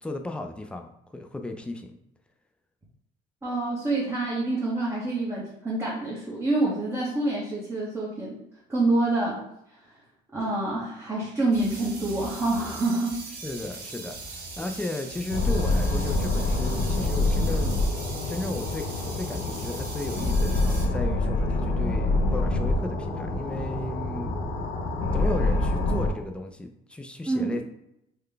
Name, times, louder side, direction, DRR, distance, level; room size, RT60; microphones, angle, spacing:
voice 1, 0.0-1.9 13.4-17.8 18.3-24.3 25.1-27.6, left 2 dB, 5° left, 5 dB, 0.3 m, -35 dB
voice 2, 3.4-8.4 8.7-9.4 10.3-13.2 27.3-27.6, right 2 dB, 15° right, -6 dB, 0.8 m, -27 dB
sound 1, 11.5-20.9, right 2 dB, 80° right, 1.0 m, -40 dB
sound 2, 15.3-26.1, left 2 dB, 70° left, 0.7 m, -26 dB
3.8 x 2.2 x 3.3 m, 0.80 s
cardioid pair, 110°, 17 cm